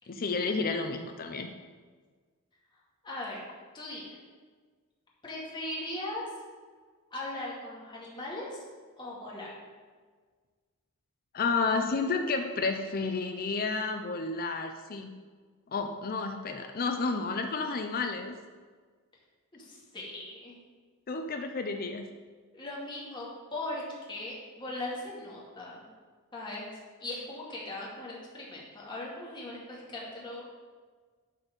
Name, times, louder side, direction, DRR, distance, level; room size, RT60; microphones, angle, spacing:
voice 1, 0.1-1.5 11.3-15.1 15.7-18.4 21.1-22.1, left 4 dB, 40° left, 5 dB, 0.5 m, -31 dB
voice 2, 3.0-3.4 3.7-4.0 5.2-6.2 7.1-8.6 9.0-9.5 19.5-20.6 22.5-23.8 24.1-25.8 26.3-26.7 27.0-30.4, left 1 dB, 20° left, -5 dB, 2.1 m, -39 dB
11.5 x 4.3 x 5.2 m, 1.5 s
head